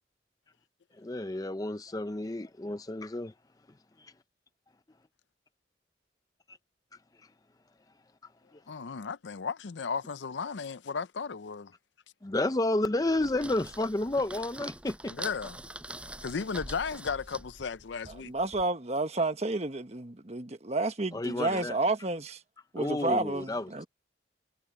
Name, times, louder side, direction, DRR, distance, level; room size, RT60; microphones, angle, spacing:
voice 1, 1.0-3.3 4.0-4.1 12.2-15.1 21.1-21.7 22.8-23.8, left 2 dB, 20° left, 0.5 m, -31 dB
voice 2, 8.7-11.7 15.1-15.6 16.2-18.3, left 5 dB, 70° left, 0.6 m, -35 dB
sound 1, 13.0-18.6, right 1 dB, 5° right, 5.8 m, -44 dB
voice 3, 18.1-22.4 22.7-23.9, right 2 dB, 35° right, 1.3 m, -31 dB
head